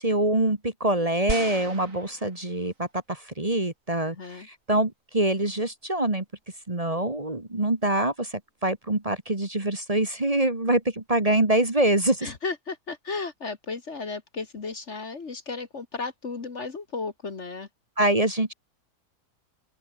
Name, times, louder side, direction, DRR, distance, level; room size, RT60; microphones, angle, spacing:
voice 1, 0.0-6.2 6.7-8.3 8.6-12.3 18.0-18.5, right 1 dB, 20° right, 2.0 m, -25 dB
sound 1, 1.3-2.8 3.6-3.7, right 3 dB, 55° right, 4.0 m, -35 dB
voice 2, 4.0-4.5 12.2-17.7, left 4 dB, 45° left, 1.9 m, -34 dB
open air
omnidirectional pair, 1.7 m